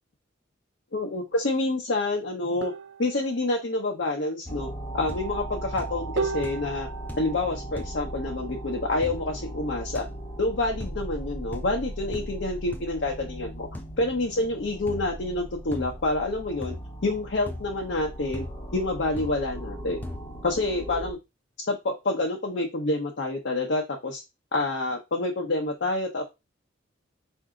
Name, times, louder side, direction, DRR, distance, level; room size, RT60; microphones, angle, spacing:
voice 1, 0.9-2.7 3.0-4.7 4.9-6.9 7.2-10.0 10.4-16.7 17.0-18.5 18.7-20.0 20.4-21.2 21.7-24.2 24.5-26.2, left 2 dB, 60° left, 1 dB, 0.8 m, -28 dB
sound 1, 2.6-3.2 6.2-7.1, right 5 dB, 65° right, 0.5 m, -32 dB
sound 2, 4.5-21.1, right 1 dB, 25° left, 1.0 m, -38 dB
sound 3, 4.5-4.8 5.1-5.5 5.8-6.2 6.4-6.8 7.1-7.4 7.8-8.0 9.0-9.2 9.9-10.0 10.8-11.0 11.5-11.7 12.1-12.3 12.7-12.8 13.7-13.9 14.9-15.1 15.7-16.0 16.6-16.9 17.5-17.7 18.3-18.6 19.2-19.4 20.0-20.3, left 1 dB, 10° left, 0.5 m, -39 dB
4.6 x 2.7 x 3.7 m, 0.23 s
head